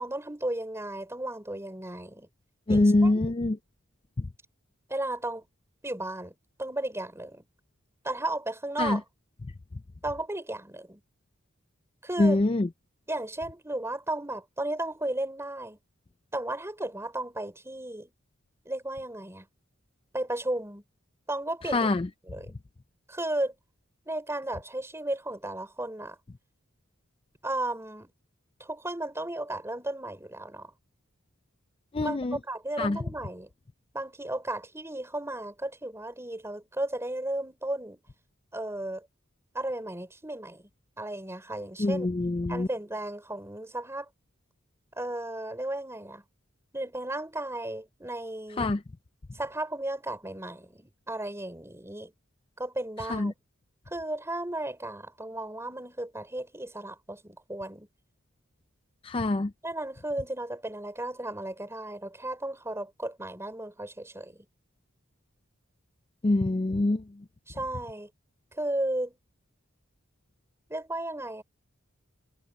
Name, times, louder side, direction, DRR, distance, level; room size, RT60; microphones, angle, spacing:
voice 1, 0.0-2.3 2.7-3.1 4.9-5.4 5.8-7.4 8.0-9.0 10.0-11.0 12.0-12.4 13.1-15.8 16.3-18.1 18.6-19.5 20.1-20.8 21.3-21.9 22.3-22.5 23.1-23.5 24.1-26.2 27.4-28.1 28.6-30.7 32.0-32.2 32.5-33.5 33.9-38.0 38.5-39.1 39.5-40.7 41.0-42.1 42.5-44.1 45.0-46.2 46.7-48.7 49.3-52.1 52.6-53.3 53.9-57.9 59.6-64.4 67.5-68.1 68.6-69.2 70.7-71.4, right 1 dB, 15° right, 4.8 m, -34 dB
voice 2, 2.7-3.6 4.2-4.3 8.8-9.0 12.2-12.7 21.7-22.1 31.9-32.4 32.8-33.0 41.8-42.7 48.6-48.8 53.1-53.3 59.0-59.5 66.2-67.0, left 2 dB, 25° left, 0.4 m, -24 dB
head